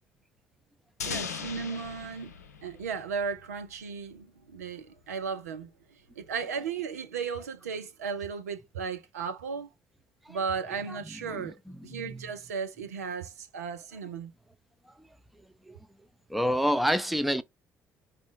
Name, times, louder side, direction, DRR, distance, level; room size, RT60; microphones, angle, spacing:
sound 1, 1.0-3.8, left 6 dB, 85° left, 0.4 m, -39 dB
voice 1, 1.0-2.3 2.6-5.7 6.2-9.7 10.3-11.5 11.8-14.3, right 6 dB, 80° right, 0.6 m, -35 dB
voice 2, 11.3-12.2 15.7-15.8 16.3-17.4, equal, ahead, 0.5 m, -29 dB
4.9 x 2.5 x 3.7 m
figure-of-eight pair, 45°, 8 cm